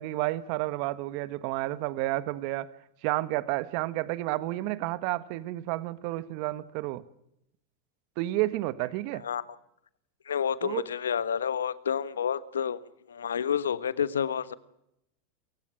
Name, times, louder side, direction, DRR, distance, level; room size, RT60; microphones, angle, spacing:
voice 1, 0.0-2.7 3.0-7.0 8.2-9.2 10.6-10.8, right 17 dB, 55° right, 1.3 m, -31 dB
voice 2, 9.1-9.4 10.2-14.5, left 8 dB, 85° left, 1.3 m, -30 dB
28.5 x 16.5 x 9.8 m
hypercardioid pair, 95°, 0 cm